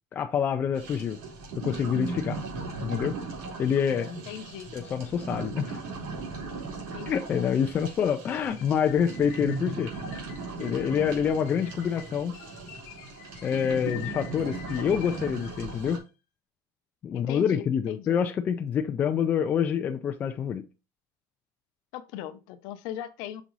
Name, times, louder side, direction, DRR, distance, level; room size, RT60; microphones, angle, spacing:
voice 1, 0.1-1.2 1.6-2.4 2.8-3.2 3.6-4.2 4.7-5.8 7.1-9.9 10.6-12.3 13.4-16.0 17.0-20.6, left 8 dB, 20° left, 0.3 m, -27 dB
sound 1, 0.7-16.0, right 4 dB, 85° right, 3.2 m, -38 dB
voice 2, 4.3-4.7 6.9-7.3 17.1-18.2 21.9-23.4, left 11 dB, 55° left, 0.7 m, -39 dB
sound 2, 8.3-16.1, left 12 dB, 70° left, 1.0 m, -47 dB
6.0 x 4.1 x 3.9 m
cardioid pair, 180°, 8 cm